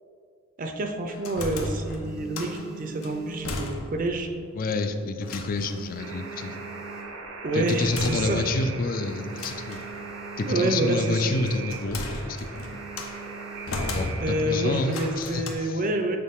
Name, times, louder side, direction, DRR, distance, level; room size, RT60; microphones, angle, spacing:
voice 1, 0.6-4.3 7.4-8.4 10.4-11.3 14.2-16.2, right 1 dB, 40° right, 5 dB, 0.5 m, -28 dB
sound 1, 0.7-1.4 1.8-4.3 4.6-5.0 5.3-7.5 8.0-8.1 8.3-8.4 8.7-10.9 11.2-11.5 11.8-12.1 12.5-14.3 15.1-15.6, right 5 dB, 15° left, 0.7 m, -44 dB
sound 2, 1.1-2.7 3.0-4.2 4.4-4.5 5.2-5.8 7.7-8.8 9.3-9.9 11.0-13.2 13.7-14.5 14.9-15.5, left 2 dB, 75° left, 0.7 m, -35 dB
voice 2, 4.5-6.6 7.5-9.8 10.4-12.7 13.9-15.8, left 3 dB, 40° left, 7 dB, 0.4 m, -28 dB
Alarm, 6.0-15.2, right 4 dB, 85° right, 0.7 m, -40 dB
6.7 x 3.9 x 3.6 m, 2.2 s
head